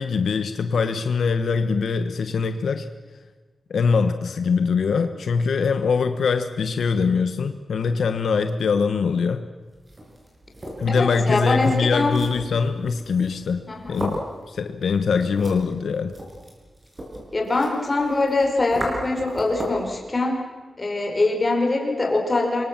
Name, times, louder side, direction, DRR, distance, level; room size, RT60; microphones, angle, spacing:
voice 1, 0.0-2.9 3.7-9.4 10.8-13.6 13.9-14.2 14.5-16.1, left 5 dB, 85° left, 9 dB, 1.2 m, -22 dB
sound 1, 9.7-19.9, equal, 25° right, 6.3 m, -36 dB
voice 2, 10.9-12.2 13.7-14.1 17.3-20.4 20.8-22.6, left 2 dB, 25° left, 1 dB, 4.9 m, -23 dB
27.0 x 23.5 x 7.5 m, 1.3 s
wide cardioid pair, 160°, 0 cm